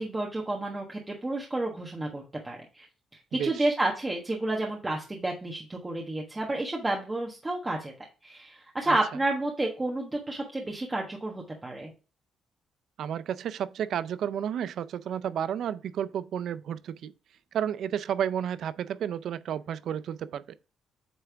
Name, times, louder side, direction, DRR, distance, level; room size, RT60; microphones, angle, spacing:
voice 1, 0.0-2.9 3.4-7.9 8.2-11.9, right 2 dB, 20° right, 1.3 m, -30 dB
voice 2, 3.3-3.6 8.9-9.0 13.0-17.1 17.5-20.4, right 9 dB, 70° right, 0.4 m, -31 dB
8.3 x 3.4 x 3.4 m
cardioid pair, 90°, 0 cm